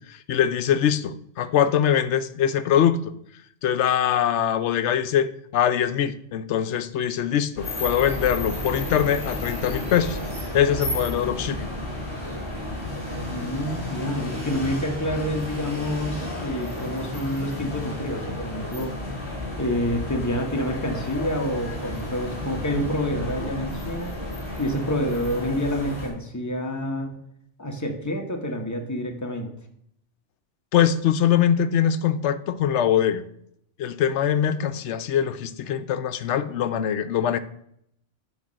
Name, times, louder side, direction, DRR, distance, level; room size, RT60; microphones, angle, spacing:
voice 1, 0.1-3.1 3.6-10.2 10.5-11.7 30.7-33.2 33.8-37.4, left 9 dB, 75° left, 12 dB, 0.9 m, -22 dB
sound 1, 7.5-26.1, left 1 dB, 5° right, 4.1 m, -32 dB
voice 2, 13.3-18.9 19.6-24.1 24.6-27.1 27.6-29.5, equal, 15° left, 2 dB, 1.1 m, -28 dB
10.0 x 3.6 x 6.3 m, 0.71 s
omnidirectional pair, 1.2 m